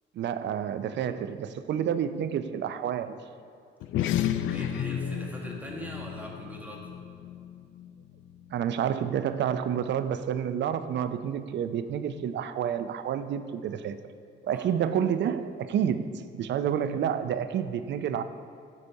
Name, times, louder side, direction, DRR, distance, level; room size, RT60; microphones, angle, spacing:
voice 1, 0.2-3.2 8.5-14.0 14.4-16.1 16.3-18.2, right 9 dB, 65° right, 11 dB, 0.5 m, -29 dB
sound 1, 3.8-8.6, left 10 dB, 80° left, 0.4 m, -32 dB
voice 2, 4.4-6.9 14.5-14.7, equal, 10° right, -2 dB, 1.7 m, -41 dB
12.0 x 4.2 x 4.6 m, 2.3 s
cardioid pair, 90°, 20 cm